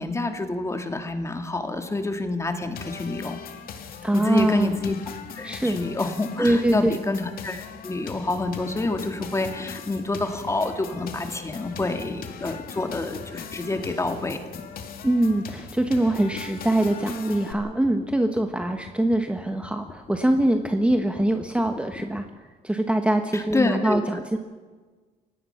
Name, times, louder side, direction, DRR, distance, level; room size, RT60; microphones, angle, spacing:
voice 1, 0.0-3.4 4.1-5.0 5.4-14.4 23.3-24.0, left 2 dB, 15° left, 6 dB, 2.1 m, -28 dB
sound 1, 2.7-17.5, left 7 dB, 60° left, 2.2 m, -40 dB
voice 2, 4.0-4.8 5.4-5.8 6.4-6.9 15.0-22.3 22.6-24.4, right 1 dB, 5° right, 5 dB, 1.2 m, -23 dB
sound 2, 8.2-22.3, left 4 dB, 35° left, 1.9 m, -44 dB
29.5 x 17.0 x 5.8 m, 1.4 s
cardioid pair, 110°, 17 cm